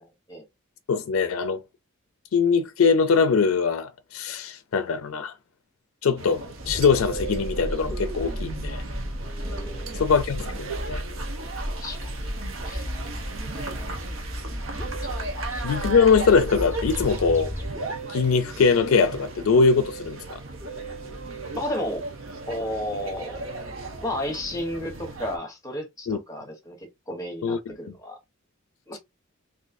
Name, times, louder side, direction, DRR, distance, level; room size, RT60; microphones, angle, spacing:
voice 1, 0.9-1.6 2.3-5.3 6.0-8.8 9.9-11.0 15.6-17.5 18.1-20.4 26.1-26.2 27.4-27.6, left 5 dB, 85° left, 0.4 m, -22 dB
sound 1, 6.2-25.4, right 3 dB, 70° right, 0.8 m, -37 dB
sound 2, 6.6-17.8, equal, 15° right, 0.7 m, -34 dB
Musical instrument, 6.7-24.3, right 4 dB, 30° right, 1.4 m, -42 dB
voice 2, 9.4-10.0 11.8-12.1 12.6-12.9 13.5-13.6 15.0-15.1 15.5-15.6 21.5-22.0 22.5-23.6 24.0-28.2 28.9-29.0, equal, 15° left, 1.0 m, -33 dB
3.9 x 2.6 x 2.5 m
head